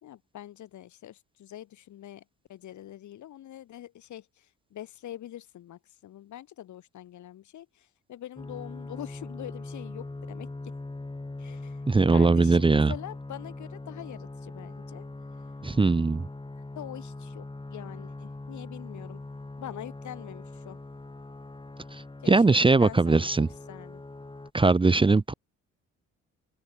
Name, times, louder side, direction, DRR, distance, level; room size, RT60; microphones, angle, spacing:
voice 1, 0.0-2.2 2.5-10.7 11.4-11.8 12.1-15.1 16.8-19.2 19.6-20.8 22.2-23.3 23.7-24.0, left 12 dB, 70° left, 2.7 m, -44 dB
sound 1, 8.4-24.5, left 2 dB, 15° left, 6.3 m, -41 dB
voice 2, 11.9-12.9 15.6-16.2 21.9-23.5 24.5-25.3, right 3 dB, 15° right, 0.8 m, -21 dB
open air
cardioid pair, 90°, 30 cm